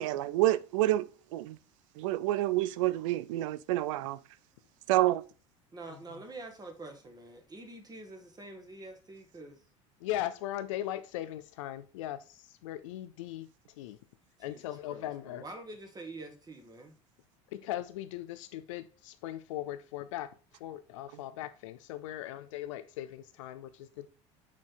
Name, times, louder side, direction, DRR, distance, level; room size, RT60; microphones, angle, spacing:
voice 1, 0.0-1.6 2.0-4.2 4.9-5.2, right 16 dB, 75° right, 0.4 m, -28 dB
voice 2, 5.7-9.6 14.4-16.9, right 2 dB, 25° right, 1.5 m, -46 dB
voice 3, 10.0-13.5 13.8-14.0 14.4-15.4 17.5-24.1, left 13 dB, 75° left, 0.4 m, -39 dB
6.2 x 4.4 x 3.8 m
hypercardioid pair, 75°, 16 cm